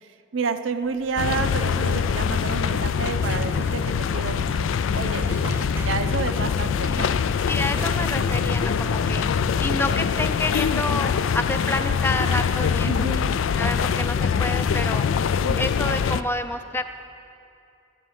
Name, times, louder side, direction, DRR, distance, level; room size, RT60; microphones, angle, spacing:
voice 1, 0.0-5.3 5.8-7.1 12.8-13.3 15.4-15.7, right 5 dB, 80° right, 9 dB, 0.6 m, -30 dB
sound 1, 0.8-9.2 9.9-11.1, right 1 dB, 10° right, 0.7 m, -38 dB
sound 2, 1.2-16.2, left 6 dB, 85° left, 0.4 m, -24 dB
voice 2, 7.5-9.3 9.6-12.9 13.3-15.1 15.6-16.9, left 2 dB, 10° left, 8 dB, 0.3 m, -29 dB
sound 3, 7.9-14.8, right 1 dB, 60° left, 1.1 m, -38 dB
13.5 x 10.0 x 5.2 m, 2.5 s
head